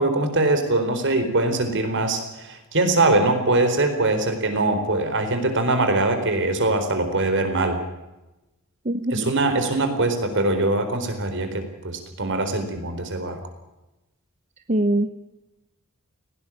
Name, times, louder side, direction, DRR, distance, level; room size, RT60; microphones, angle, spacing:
voice 1, 0.0-7.8 9.1-13.4, right 2 dB, 55° right, 8 dB, 4.2 m, -22 dB
voice 2, 8.8-9.3 14.7-15.1, right 1 dB, 35° right, 9 dB, 0.9 m, -22 dB
19.0 x 18.0 x 8.6 m, 1.0 s
head